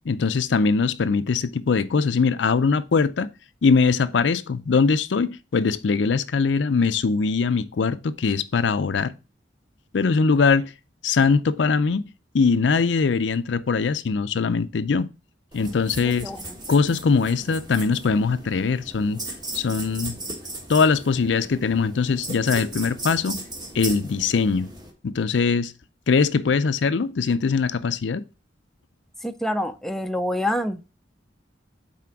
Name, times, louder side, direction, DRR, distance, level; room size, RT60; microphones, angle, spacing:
voice 1, 0.1-3.3 3.6-9.1 9.9-10.7 11.0-15.1 15.5-16.3 16.7-19.2 19.5-20.2 20.7-23.4 23.7-24.7 25.0-25.7 26.1-28.2, left 5 dB, 75° left, 0.5 m, -21 dB
sound 1, 15.5-24.9, right 2 dB, 25° right, 1.6 m, -37 dB
voice 2, 16.0-16.4 29.2-30.9, left 1 dB, ahead, 0.5 m, -27 dB
6.0 x 4.2 x 5.8 m
head